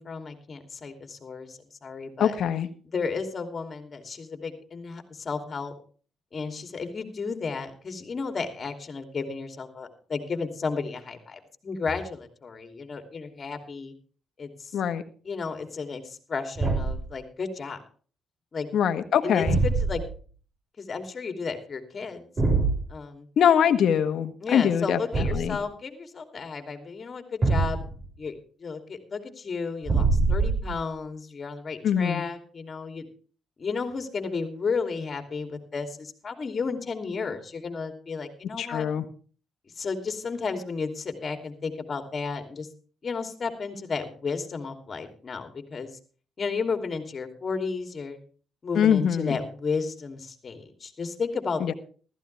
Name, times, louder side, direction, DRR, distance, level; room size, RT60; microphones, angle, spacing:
voice 1, 0.0-2.4 2.8-5.7 6.3-13.9 14.4-14.8 15.2-17.8 18.5-18.7 19.2-20.0 20.8-22.3 22.9-23.3 24.4-27.8 28.2-28.3 28.6-33.1 33.6-38.8 39.8-42.7 43.0-46.0 46.4-48.2 48.6-51.7, left 4 dB, 40° left, 6 dB, 2.9 m, -33 dB
voice 2, 2.2-2.7 14.7-15.0 18.7-19.6 23.4-25.0 25.3-25.6 31.8-32.2 38.6-39.0 48.7-49.4 51.6-51.7, left 8 dB, 70° left, 8 dB, 1.4 m, -23 dB
Thump thud, 16.6-17.1 19.4-20.1 22.4-22.8 25.1-25.6 27.4-28.1 29.8-30.8, right 3 dB, 35° right, 6.6 m, -24 dB
15.0 x 14.0 x 3.4 m, 0.40 s
cardioid pair, 90°, 0 cm